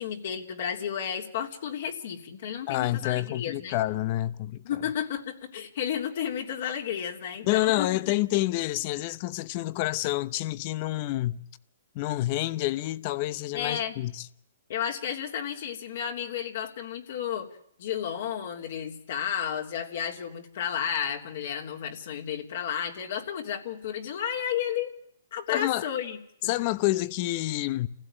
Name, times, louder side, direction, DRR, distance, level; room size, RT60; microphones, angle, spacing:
voice 1, 0.0-3.8 4.6-7.9 13.5-14.0 14.7-17.5 17.8-24.9 25.3-26.5, left 9 dB, 55° left, 3.2 m, -32 dB
voice 2, 2.7-4.6 7.4-11.4 11.9-14.3 25.5-25.9 26.4-27.9, left 17 dB, 35° left, 0.9 m, -28 dB
28.0 x 16.5 x 9.0 m
hypercardioid pair, 155°, 0 cm